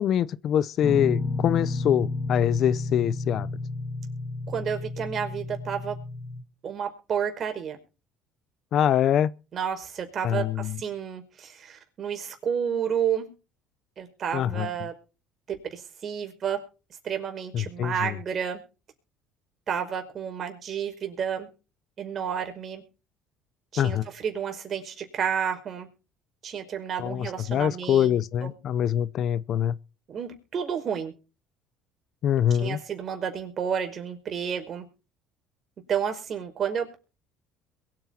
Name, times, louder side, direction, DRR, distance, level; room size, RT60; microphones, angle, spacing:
voice 1, 0.0-3.5 8.7-9.3 10.2-10.8 14.3-14.7 17.5-18.1 23.8-24.0 27.0-29.7 32.2-32.8, left 10 dB, 55° left, 0.8 m, -24 dB
sound 1, 0.8-6.4, left 3 dB, 25° left, 1.6 m, -31 dB
voice 2, 4.5-6.0 6.6-7.8 9.5-13.3 14.0-14.9 15.7-16.6 17.0-18.6 19.7-21.5 22.0-22.8 23.7-25.9 26.4-28.1 28.4-28.5 30.1-31.1 32.6-34.8 35.9-36.9, right 7 dB, 45° right, 5.1 m, -31 dB
22.5 x 8.9 x 4.4 m
supercardioid pair, 95°, 0 cm